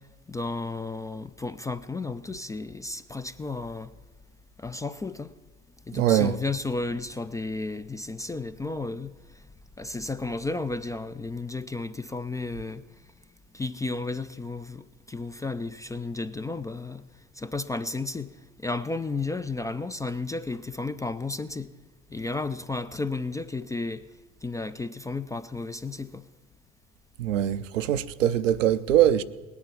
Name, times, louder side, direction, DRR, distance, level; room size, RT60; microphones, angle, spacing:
voice 1, 0.3-3.9 4.6-5.3 5.9-9.1 9.8-12.8 13.5-17.0 17.4-18.3 18.6-21.7 22.1-24.0 24.4-26.2, left 3 dB, 10° left, 0.3 m, -33 dB
voice 2, 5.9-6.4 27.2-29.2, right 11 dB, 80° right, 0.7 m, -22 dB
19.0 x 9.7 x 5.9 m
hypercardioid pair, 75°, 37 cm